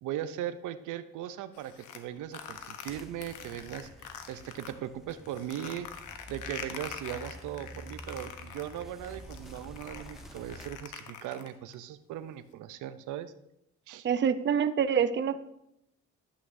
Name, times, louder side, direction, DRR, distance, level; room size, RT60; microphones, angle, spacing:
voice 1, 0.0-3.9 4.3-6.0 6.3-13.3 13.9-14.1, right 11 dB, 85° right, 13 dB, 0.5 m, -38 dB
sound 1, 1.5-4.7 5.1-11.7, left 8 dB, 80° left, 0.9 m, -44 dB
sound 2, 2.9-10.7, equal, ahead, 0.9 m, -49 dB
voice 2, 14.0-15.4, right 7 dB, 40° right, 12 dB, 0.5 m, -26 dB
11.5 x 8.4 x 2.6 m, 0.81 s
cardioid pair, 90°, 30 cm